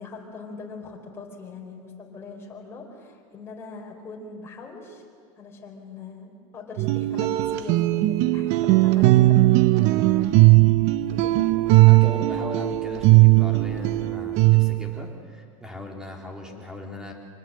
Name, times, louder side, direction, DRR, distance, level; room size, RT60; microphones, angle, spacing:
voice 1, 0.0-5.0 5.4-10.5 11.1-11.8, left 4 dB, 15° left, -1 dB, 4.1 m, -41 dB
sound 1, 6.8-15.0, right 18 dB, 45° right, 0.7 m, -18 dB
voice 2, 11.9-17.1, left 1 dB, 5° right, 1 dB, 3.0 m, -38 dB
26.0 x 20.0 x 7.6 m, 2.1 s
supercardioid pair, 155°, 16 cm